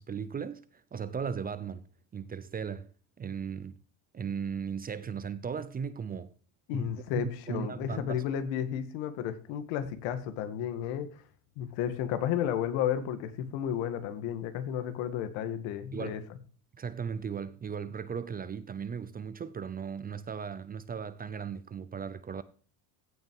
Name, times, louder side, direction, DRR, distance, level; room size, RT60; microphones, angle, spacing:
voice 1, 0.0-2.9 3.2-3.8 4.1-6.3 6.7-8.2 15.9-16.2 16.8-22.4, right 6 dB, 20° right, 0.5 m, -37 dB
voice 2, 6.7-11.1 11.6-16.2, left 9 dB, 90° left, 2.0 m, -32 dB
16.0 x 6.1 x 4.7 m
cardioid pair, 150°, 45 cm